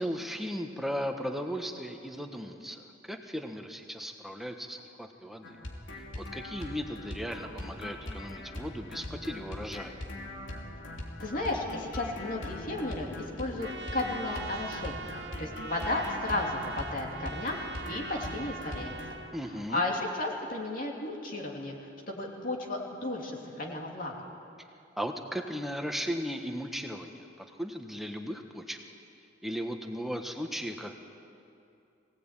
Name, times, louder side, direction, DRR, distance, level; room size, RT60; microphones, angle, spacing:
voice 1, 0.0-5.6 6.2-10.0 19.3-19.8 25.0-27.3 27.6-28.8 29.4-30.9, equal, ahead, 4 dB, 1.4 m, -36 dB
sound 1, 5.4-19.1, left 1 dB, 85° left, 3.1 m, -41 dB
voice 2, 11.2-15.1 15.4-18.9 19.7-24.1, left 2 dB, 45° left, -1 dB, 3.0 m, -34 dB
Trumpet, 13.6-19.4, right 4 dB, 65° right, 1.0 m, -42 dB
23.0 x 18.0 x 9.1 m, 2.6 s
head